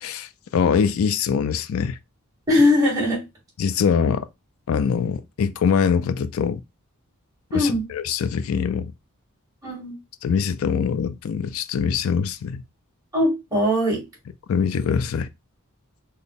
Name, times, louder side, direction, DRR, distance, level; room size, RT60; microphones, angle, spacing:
voice 1, 0.0-2.0 3.6-4.3 4.7-6.6 7.5-8.9 10.2-12.6 14.5-15.3, left 6 dB, 65° left, 0.3 m, -23 dB
voice 2, 2.5-3.2 7.5-7.8 9.6-9.9 13.1-14.0, left 1 dB, 15° right, 1.9 m, -20 dB
4.0 x 2.1 x 3.4 m
head